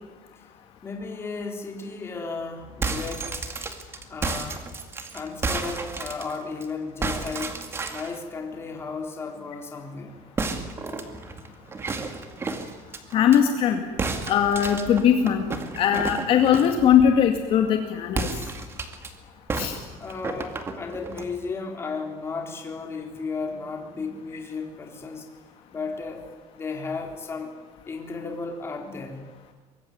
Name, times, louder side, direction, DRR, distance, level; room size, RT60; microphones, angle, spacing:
voice 1, 0.8-3.3 4.1-4.6 5.1-7.6 7.9-10.1 20.0-25.3 25.7-26.2 26.5-27.5 27.9-29.3, left 4 dB, 20° left, 2 dB, 3.8 m, -34 dB
sound 1, 2.6-6.6 7.0-8.2 10.4-13.4 14.0-16.8 18.1-19.1 19.5-21.3, right 3 dB, 20° right, 2.2 m, -32 dB
voice 2, 13.1-13.8 14.3-15.5 15.8-18.3 19.6-19.8, left 9 dB, 45° left, 4 dB, 2.3 m, -20 dB
24.0 x 21.5 x 9.6 m, 1.2 s
cardioid pair, 170°, 13 cm